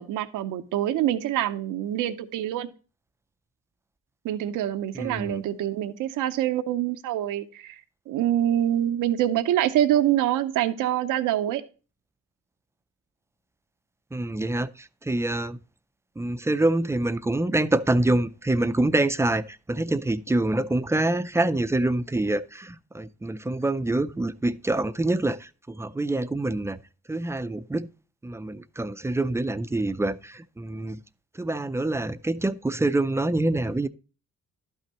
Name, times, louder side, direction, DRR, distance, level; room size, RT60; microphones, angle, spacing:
voice 1, 0.0-2.7 4.2-7.8 8.1-11.6, right 12 dB, 85° right, 0.7 m, -25 dB
voice 2, 4.9-5.4 14.1-15.6 16.2-26.8 27.1-27.9 28.2-31.0 31.4-33.9, right 2 dB, 10° right, 0.4 m, -26 dB
11.5 x 5.8 x 2.9 m
cardioid pair, 90°, 30 cm